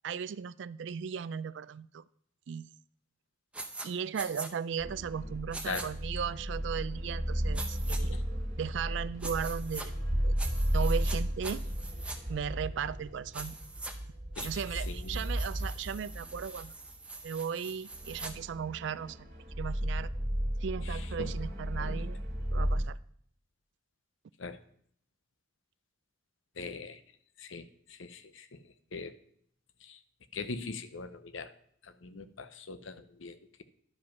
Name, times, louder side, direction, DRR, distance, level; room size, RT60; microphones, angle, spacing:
voice 1, 0.0-2.0 2.5-2.7 3.8-8.2 8.6-10.0 10.2-10.3 10.7-11.6 12.3-13.6 14.4-16.7 17.2-19.3 19.6-20.1 20.6-22.2 22.5-23.0, right 7 dB, 65° right, 16 dB, 0.3 m, -36 dB
sound 1, 3.5-3.9 4.1-4.5 5.5-5.9 7.5-8.0 9.2-9.9 10.4-11.2 11.4-12.2 13.3-13.9 14.4-18.3, right 3 dB, 5° right, 0.7 m, -43 dB
sound 2, 4.8-16.9 17.2-17.3 17.9-22.8, equal, 45° right, 2.2 m, -34 dB
voice 2, 14.9-15.3 20.9-21.3 21.8-22.0 24.4-24.6 26.6-27.0 27.4-29.1 29.8-30.0 30.3-31.5 31.8-33.6, left 4 dB, 75° left, 11 dB, 0.7 m, -42 dB
11.0 x 5.1 x 5.8 m, 0.65 s
head